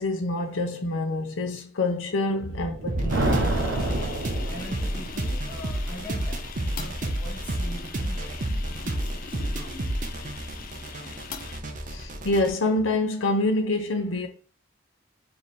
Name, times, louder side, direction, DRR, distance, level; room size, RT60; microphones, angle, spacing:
voice 1, 0.0-3.2 11.9-14.3, left 2 dB, 90° left, 0.7 m, -26 dB
Thunder, 2.6-5.2, right 2 dB, 85° right, 0.7 m, -28 dB
sound 1, 2.9-12.5, right 1 dB, 45° right, 0.6 m, -31 dB
sound 2, 3.1-11.6, left 6 dB, 45° left, 0.4 m, -42 dB
voice 2, 4.1-10.0, equal, 10° left, 1.0 m, -43 dB
3.3 x 2.8 x 4.1 m
head